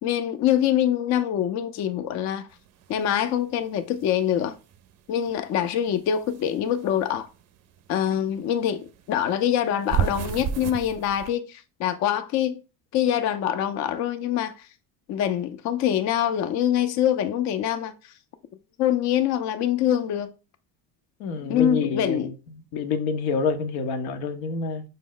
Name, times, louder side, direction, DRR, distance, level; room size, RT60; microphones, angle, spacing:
voice 1, 0.0-2.5 2.9-4.6 5.1-7.3 7.9-12.6 12.9-14.7 15.1-18.1 18.8-20.3 21.5-22.3, left 10 dB, 50° left, 0.5 m, -24 dB
sound 1, 2.5-5.4 5.7-8.5 8.8-11.3, right 9 dB, 45° right, 0.4 m, -32 dB
voice 2, 21.2-22.2 22.7-24.8, left 5 dB, 85° left, 0.7 m, -27 dB
5.2 x 2.0 x 3.7 m
supercardioid pair, 95°, 37 cm